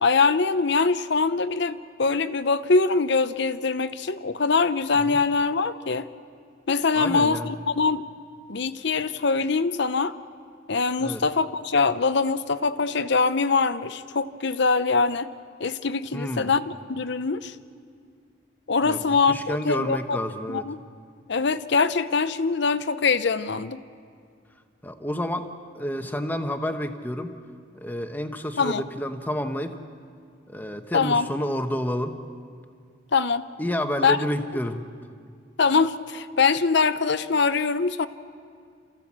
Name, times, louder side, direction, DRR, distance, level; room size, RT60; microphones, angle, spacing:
voice 1, 0.0-6.1 6.7-7.4 7.7-8.0 8.5-10.1 10.7-15.3 15.6-16.6 16.9-17.5 18.7-20.2 20.5-20.8 21.3-23.8 28.6-28.8 30.9-31.3 33.1-33.5 34.0-34.2 35.6-38.1, left 4 dB, 60° left, 13 dB, 0.7 m, -23 dB
voice 2, 6.9-7.5 11.0-11.2 16.1-16.5 18.8-19.0 19.3-20.7 24.8-25.5 25.7-27.4 27.7-29.8 30.5-32.2 33.6-34.8, equal, 10° left, 6 dB, 1.0 m, -29 dB
28.5 x 15.0 x 7.4 m, 2.2 s
head